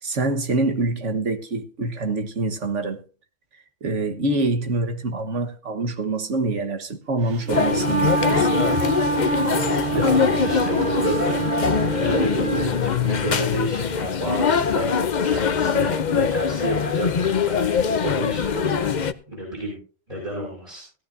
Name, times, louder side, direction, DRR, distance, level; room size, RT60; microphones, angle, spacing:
voice 1, 0.0-3.0 3.8-8.5, right 2 dB, 75° right, 1.8 m, -25 dB
Wind instrument woodwind instrument, 7.3-12.7, right 6 dB, 55° right, 1.1 m, -26 dB
sound 1, 7.5-19.1, left 6 dB, 45° left, 0.7 m, -22 dB
voice 2, 9.9-11.4 11.7-17.1 17.4-18.9 19.3-19.8 20.1-20.8, right 1 dB, 30° right, 5.6 m, -30 dB
17.5 x 12.5 x 2.7 m
omnidirectional pair, 1.2 m